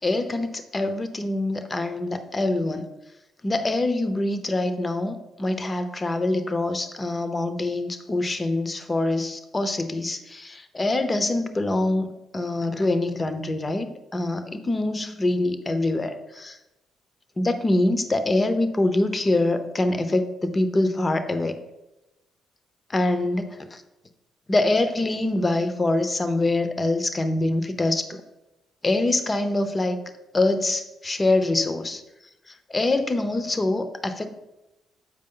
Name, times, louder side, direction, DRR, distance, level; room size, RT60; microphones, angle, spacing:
voice 1, 0.0-2.9 3.4-16.6 17.4-21.6 22.9-23.8 24.5-28.2 28.8-30.0 30.3-32.0 32.7-34.3, left 2 dB, 25° left, 9 dB, 0.7 m, -24 dB
7.7 x 4.8 x 3.8 m, 0.98 s
cardioid pair, 90°, 0 cm